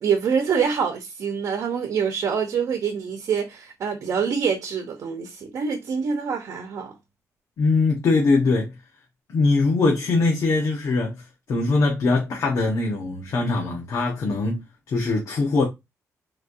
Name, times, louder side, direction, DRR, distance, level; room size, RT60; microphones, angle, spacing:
voice 1, 0.0-6.9, right 6 dB, 65° right, 0.9 m, -25 dB
voice 2, 7.6-8.7 9.3-11.1 11.5-14.6 14.9-15.6, left 3 dB, 60° left, 1.1 m, -21 dB
4.2 x 3.2 x 2.6 m
cardioid pair, 135°, 6 cm